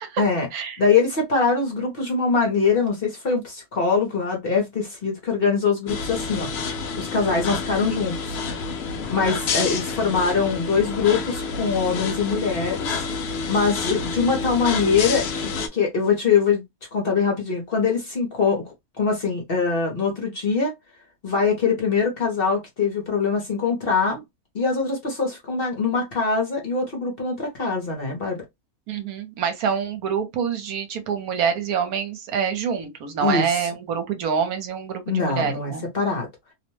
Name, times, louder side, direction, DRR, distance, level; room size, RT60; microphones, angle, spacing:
voice 1, 0.2-0.5 0.8-6.5 6.9-8.4 9.1-16.6 16.9-20.7 21.2-24.2 24.5-28.4 33.2-33.7 35.1-36.3, left 5 dB, 45° left, 0.9 m, -23 dB
sound 1, 5.9-15.7, left 5 dB, 70° left, 0.6 m, -29 dB
voice 2, 28.9-35.8, right 7 dB, 75° right, 1.2 m, -26 dB
2.7 x 2.1 x 3.0 m
omnidirectional pair, 1.6 m